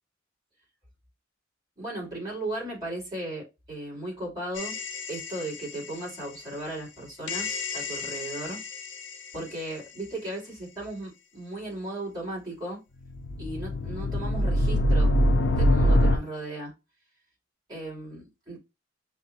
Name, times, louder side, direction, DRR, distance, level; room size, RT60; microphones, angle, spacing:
voice 1, 1.8-4.8 5.1-8.6 9.3-12.8 13.4-16.7 17.7-18.6, right 1 dB, 20° right, 2.8 m, -36 dB
sound 1, 4.6-5.7 7.3-9.1 13.0-16.2, left 1 dB, 75° left, 0.6 m, -25 dB
6.0 x 2.6 x 2.6 m
head